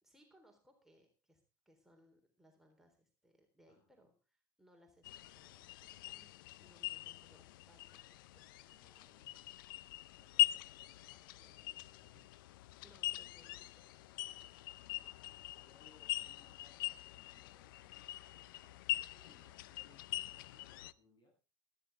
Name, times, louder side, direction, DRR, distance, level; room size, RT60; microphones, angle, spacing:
voice 1, 0.0-6.3 6.6-9.0 12.8-13.9 14.2-14.5, equal, 5° right, 2 dB, 3.8 m, -68 dB
voice 2, 3.7-4.1 8.8-9.7 10.1-12.3 14.4-21.4, left 2 dB, 40° left, 4 dB, 7.9 m, -70 dB
sound 1, 5.0-20.9, left 15 dB, 80° left, 0.6 m, -42 dB
14.0 x 14.0 x 3.5 m, 0.33 s
hypercardioid pair, 85°, 11 cm